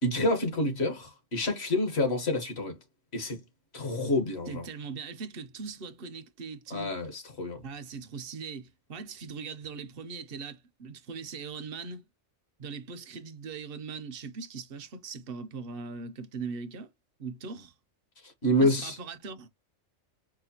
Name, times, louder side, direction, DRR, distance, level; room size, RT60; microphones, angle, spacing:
voice 1, 0.0-2.8 3.1-3.4 3.7-4.6 6.7-7.6 18.4-19.0, left 1 dB, 60° left, 1.5 m, -28 dB
voice 2, 4.5-6.9 7.6-12.0 12.6-16.9 17.2-17.7 18.6-19.5, right 5 dB, 55° right, 0.8 m, -40 dB
4.9 x 2.2 x 2.8 m
omnidirectional pair, 1.2 m